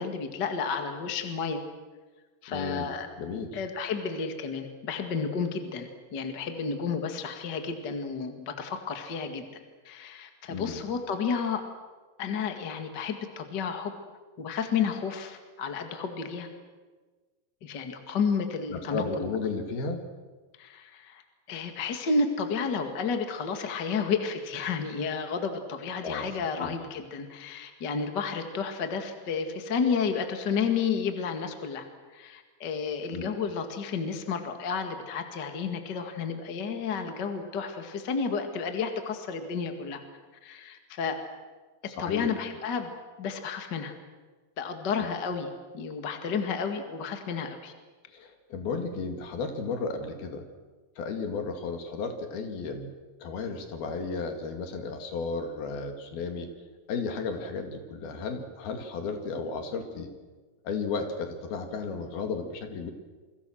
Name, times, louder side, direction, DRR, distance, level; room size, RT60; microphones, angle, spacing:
voice 1, 0.0-1.6 2.4-3.1 3.5-9.5 9.8-11.6 12.2-13.9 14.4-16.5 17.6-19.3 20.6-21.2 21.5-31.8 32.1-40.0 40.4-41.2 42.0-42.9 43.2-43.9 44.6-47.7, left 5 dB, 40° left, 6 dB, 1.5 m, -31 dB
voice 2, 2.5-2.9 3.2-3.6 10.5-10.8 18.7-20.1 26.0-26.3 26.6-26.7 33.1-33.3 42.0-42.3 48.1-50.4 51.0-52.9 53.2-56.5 56.9-60.1 60.6-62.9, left 4 dB, 60° left, 5 dB, 3.9 m, -33 dB
28.5 x 24.0 x 6.4 m, 1.3 s
omnidirectional pair, 5.2 m